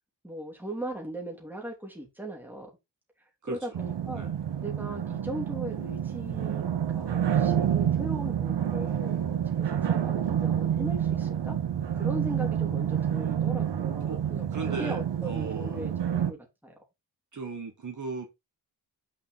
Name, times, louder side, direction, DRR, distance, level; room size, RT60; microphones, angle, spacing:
voice 1, 0.2-2.7 3.4-4.3 4.6-6.7 6.9-11.6 12.0-16.7, right 1 dB, 5° right, 3.0 m, -38 dB
voice 2, 3.4-3.8 4.1-4.3 14.1-14.2 14.5-15.9 17.3-18.3, right 3 dB, 45° right, 1.7 m, -37 dB
sound 1, 3.7-16.3, right 9 dB, 90° right, 1.1 m, -28 dB
6.7 x 5.0 x 4.1 m
wide cardioid pair, 145°, 41 cm